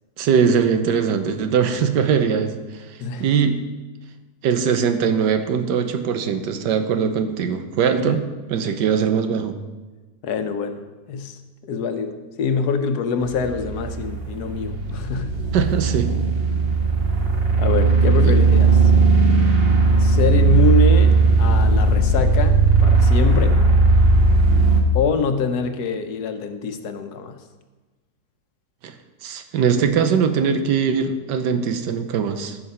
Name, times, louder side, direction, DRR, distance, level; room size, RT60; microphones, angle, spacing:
voice 1, 0.2-3.6 4.4-9.6 15.5-16.2 18.2-18.4 28.8-28.9 29.2-32.6, right 6 dB, 85° right, 8 dB, 1.4 m, -21 dB
voice 2, 7.9-8.2 10.2-15.3 17.6-18.7 20.0-23.6 24.9-27.4, left 5 dB, 70° left, 8 dB, 1.3 m, -25 dB
sound 1, 13.2-24.8, right 3 dB, 40° right, 1.3 m, -17 dB
14.5 x 5.7 x 5.5 m, 1.3 s
omnidirectional pair, 1.8 m